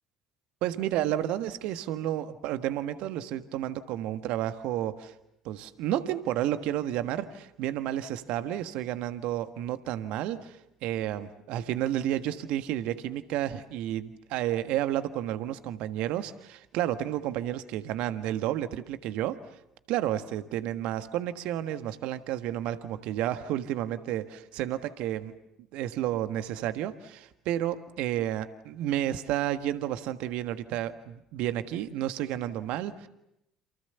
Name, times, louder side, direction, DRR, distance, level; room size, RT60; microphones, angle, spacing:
voice 1, 0.6-5.1 5.4-19.4 19.9-25.3 25.7-33.1, right 12 dB, 60° right, 11 dB, 1.5 m, -31 dB
29.0 x 28.0 x 6.9 m, 0.84 s
figure-of-eight pair, 55°, 2 cm